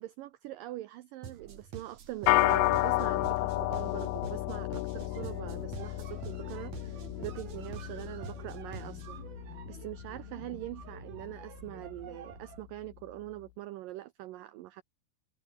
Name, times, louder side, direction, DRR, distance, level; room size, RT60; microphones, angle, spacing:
voice 1, 0.0-9.2 9.7-14.8, right 16 dB, 90° right, 1.9 m, -43 dB
sound 1, 1.2-9.2, right 7 dB, 45° right, 3.3 m, -48 dB
sound 2, 2.3-11.8, left 18 dB, 75° left, 2.6 m, -32 dB
sound 3, 4.9-12.7, right 9 dB, 60° right, 4.1 m, -50 dB
omnidirectional pair, 4.9 m